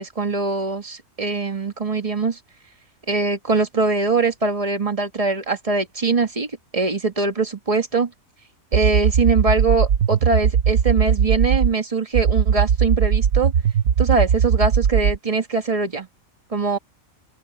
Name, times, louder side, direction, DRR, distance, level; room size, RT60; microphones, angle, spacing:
voice 1, 0.0-2.4 3.1-6.5 6.7-8.1 8.7-13.5 14.0-16.1 16.5-16.8, right 3 dB, 25° right, 1.6 m, -22 dB
sound 1, 8.7-11.7 12.1-15.2, right 8 dB, 60° right, 1.0 m, -18 dB
open air
omnidirectional pair, 1.5 m